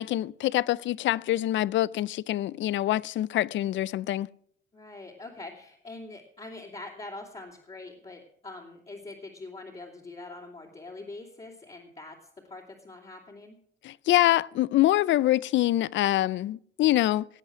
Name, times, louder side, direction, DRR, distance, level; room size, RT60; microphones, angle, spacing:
voice 1, 0.0-4.3 13.8-17.3, left 14 dB, 70° left, 0.4 m, -25 dB
voice 2, 4.7-13.6, left 2 dB, 30° left, 2.9 m, -44 dB
18.5 x 8.1 x 6.1 m
cardioid pair, 90°, 20 cm